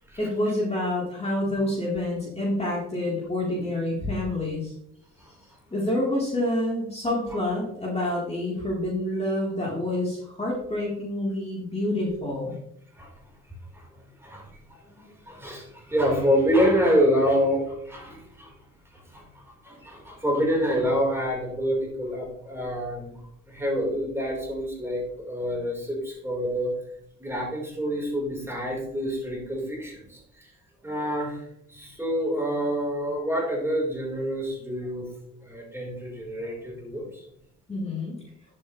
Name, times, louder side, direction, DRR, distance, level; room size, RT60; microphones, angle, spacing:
voice 1, 0.2-4.7 5.7-12.6 37.7-38.2, left 1 dB, 20° left, -4 dB, 3.7 m, -27 dB
voice 2, 14.2-18.5 18.9-23.2 23.5-26.7 27.2-30.5 30.8-31.4 31.7-35.1 35.4-37.2, equal, 10° right, -3 dB, 4.4 m, -27 dB
10.5 x 7.8 x 3.3 m, 0.71 s
cardioid pair, 90°, 30 cm